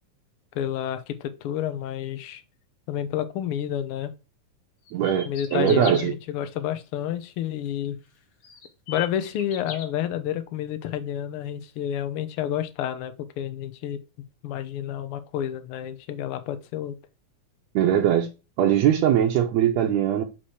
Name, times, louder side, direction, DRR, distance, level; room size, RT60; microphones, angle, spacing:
voice 1, 0.5-2.4 2.9-4.1 5.2-8.0 8.9-14.0 14.4-17.0, left 10 dB, 80° left, 1.2 m, -30 dB
sound 1, 4.9-6.1 7.8-7.9 8.4-9.8, left 5 dB, 55° left, 2.0 m, -38 dB
voice 2, 4.9-6.1 17.8-18.3 18.6-20.2, right 10 dB, 70° right, 1.9 m, -21 dB
8.5 x 3.1 x 4.6 m
omnidirectional pair, 3.5 m